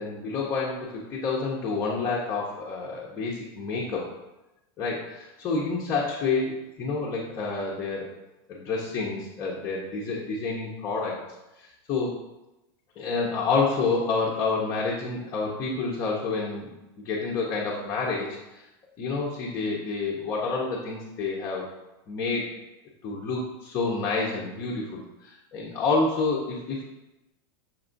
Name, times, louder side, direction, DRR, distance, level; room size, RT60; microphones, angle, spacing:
voice 1, 0.0-4.0 4.8-6.5 6.8-8.1 8.5-11.2 11.6-12.1 13.0-16.7 17.0-18.6 19.0-21.7 22.1-22.4 23.0-26.8, left 4 dB, 25° left, -4 dB, 0.5 m, -28 dB
5.7 x 2.3 x 3.8 m, 0.96 s
supercardioid pair, 170°, 14 cm